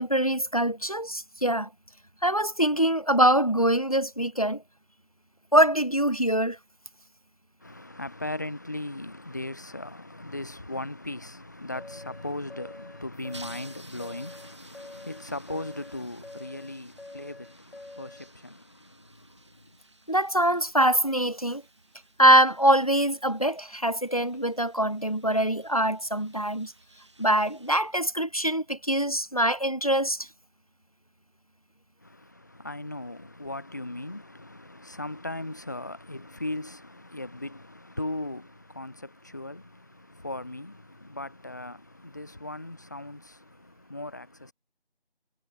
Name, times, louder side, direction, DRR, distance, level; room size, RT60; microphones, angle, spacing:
voice 1, 0.0-1.7 2.2-4.6 5.5-6.6 20.1-21.6 22.2-26.7 27.2-30.2, right 1 dB, 40° left, 0.5 m, -23 dB
voice 2, 7.6-19.8 32.0-44.5, left 1 dB, 20° left, 2.3 m, -38 dB
sound 1, 11.7-18.3, left 2 dB, 85° left, 2.5 m, -46 dB
sound 2, 13.1-28.5, right 2 dB, 30° right, 5.5 m, -54 dB
figure-of-eight pair, 180°, 31 cm